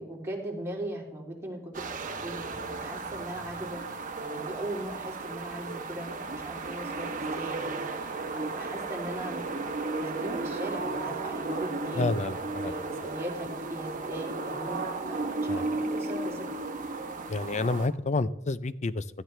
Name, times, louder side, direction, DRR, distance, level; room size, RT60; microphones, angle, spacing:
voice 1, 0.0-9.7 10.0-12.1 12.6-16.5, right 1 dB, 15° right, -3 dB, 3.3 m, -39 dB
sound 1, 1.7-17.9, right 3 dB, 40° right, 1.1 m, -34 dB
voice 2, 12.0-12.7 15.5-15.6 17.3-19.0, left 3 dB, 35° left, 16 dB, 0.5 m, -29 dB
16.5 x 13.5 x 3.4 m, 0.84 s
head